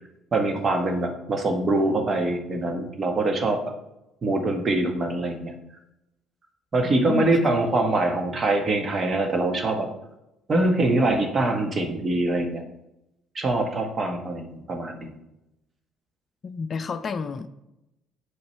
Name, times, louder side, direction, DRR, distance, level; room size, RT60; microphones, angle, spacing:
voice 1, 0.3-3.6 4.2-5.5 6.7-9.9 10.5-12.6 13.3-15.1, right 2 dB, 35° right, 5 dB, 1.1 m, -24 dB
voice 2, 16.4-17.5, left 5 dB, 40° left, 10 dB, 0.4 m, -30 dB
7.9 x 5.2 x 3.1 m, 0.89 s
hypercardioid pair, 55°, 0 cm